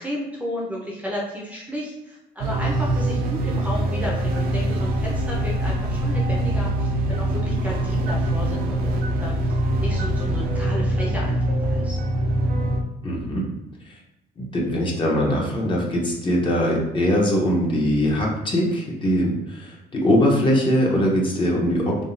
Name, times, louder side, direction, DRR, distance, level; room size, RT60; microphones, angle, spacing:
voice 1, 0.0-12.0, equal, 10° right, -4 dB, 0.6 m, -33 dB
sound 1, 2.4-12.8, right 1 dB, 65° right, 0.5 m, -23 dB
voice 2, 13.0-13.4 14.4-22.0, equal, 30° left, -2 dB, 0.8 m, -21 dB
3.5 x 2.3 x 2.6 m, 0.92 s
cardioid pair, 110°, 17 cm